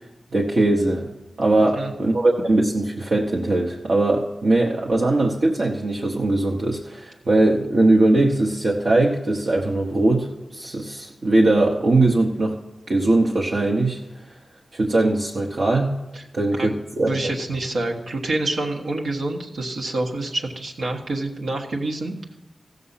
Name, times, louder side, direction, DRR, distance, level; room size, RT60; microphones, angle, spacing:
voice 1, 0.3-1.1 1.4-12.6 12.9-14.0 14.7-15.9 16.3-17.3, right 2 dB, 55° right, -3 dB, 1.0 m, -20 dB
voice 2, 1.6-1.9 16.1-16.2 16.6-16.7 17.1-22.4, right 2 dB, 80° right, 1 dB, 1.4 m, -27 dB
15.5 x 6.7 x 5.7 m, 0.99 s
wide cardioid pair, 120°, 0 cm